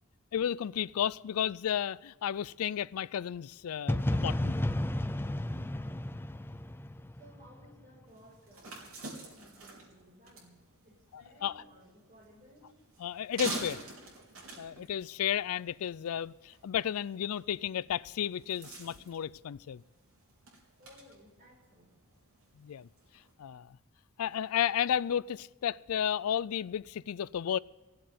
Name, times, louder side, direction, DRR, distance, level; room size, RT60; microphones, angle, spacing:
voice 1, 0.3-4.6 11.1-11.6 13.0-13.8 14.6-19.8 22.6-22.9 23.4-23.8 24.2-27.6, left 9 dB, 90° left, 0.4 m, -33 dB
sound 1, 3.9-7.7, left 1 dB, 10° left, 0.4 m, -32 dB
voice 2, 7.2-12.8 20.8-22.0, equal, 40° right, 6.1 m, -58 dB
sound 2, 8.1-23.3, right 2 dB, 70° right, 4.1 m, -47 dB
16.0 x 7.8 x 9.4 m
head